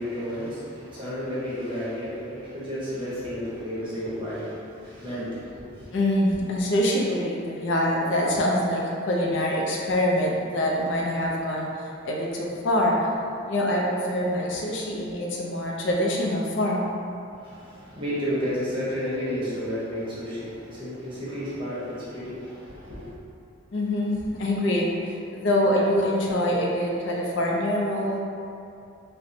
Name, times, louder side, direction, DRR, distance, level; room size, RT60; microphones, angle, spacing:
voice 1, 0.0-5.8 17.4-23.1, equal, 25° right, -10 dB, 0.9 m, -32 dB
voice 2, 5.9-13.1 13.5-16.9 23.7-28.2, left 1 dB, 60° left, -2 dB, 0.4 m, -25 dB
4.2 x 2.1 x 2.5 m, 2.5 s
head